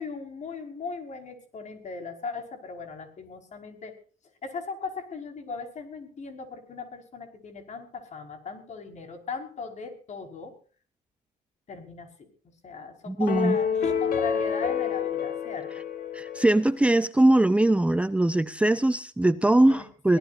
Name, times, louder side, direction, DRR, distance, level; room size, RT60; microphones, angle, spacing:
voice 1, 0.0-3.9 4.4-10.6 11.7-12.3 12.6-15.7 19.7-19.8 20.1-20.2, left 5 dB, 45° left, 5 dB, 5.4 m, -38 dB
voice 2, 13.1-13.6 16.1-20.2, right 1 dB, 5° right, 12 dB, 0.7 m, -21 dB
sound 1, 13.3-16.8, left 7 dB, 60° left, 4.2 m, -28 dB
24.0 x 18.0 x 2.7 m, 0.40 s
cardioid pair, 110°, 17 cm